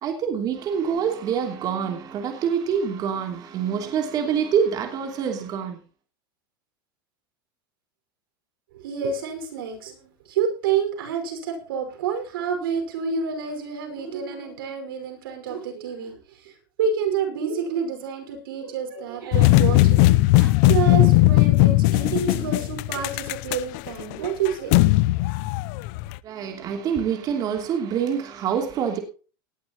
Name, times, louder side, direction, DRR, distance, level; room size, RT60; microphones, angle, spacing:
voice 1, 0.0-5.8 26.2-29.0, right 7 dB, 35° right, 3.0 m, -26 dB
voice 2, 8.7-24.8, right 6 dB, 90° right, 5.4 m, -29 dB
sound 1, 19.3-26.2, left 18 dB, 55° left, 0.6 m, -18 dB
19.0 x 11.5 x 3.0 m
supercardioid pair, 145°, 12 cm